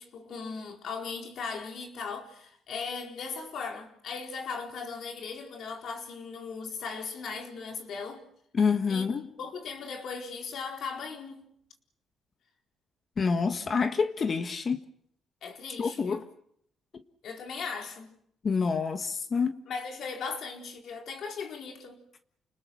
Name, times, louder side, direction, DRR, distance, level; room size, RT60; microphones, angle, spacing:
voice 1, 0.0-8.2 8.9-9.1 9.4-11.5 15.4-16.2 17.2-18.1 19.7-22.0, left 5 dB, 70° left, 4.4 m, -38 dB
voice 2, 8.5-9.3 13.2-14.8 15.8-16.3 18.4-19.6, left 5 dB, 45° left, 1.5 m, -27 dB
29.5 x 20.0 x 6.2 m
cardioid pair, 90°, 0 cm